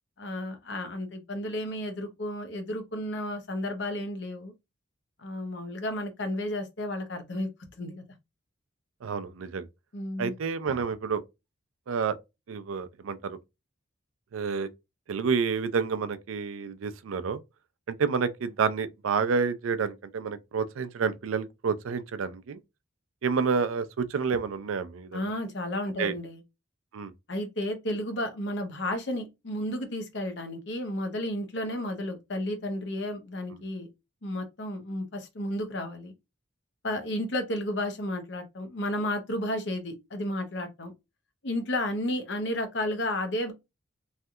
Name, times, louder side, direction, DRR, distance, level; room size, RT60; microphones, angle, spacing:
voice 1, 0.2-4.5 5.2-7.5 7.8-8.0 9.9-10.4 25.1-26.4 27.3-33.9 34.2-36.1 36.8-40.9 41.4-43.5, left 1 dB, 60° left, 0.8 m, -32 dB
voice 2, 9.0-9.7 10.2-11.2 11.9-12.1 12.5-13.4 14.3-14.7 15.1-17.4 17.9-22.6 23.2-25.2 26.0-26.1 26.9-27.1, right 5 dB, 85° right, 0.4 m, -29 dB
3.2 x 2.7 x 2.3 m
head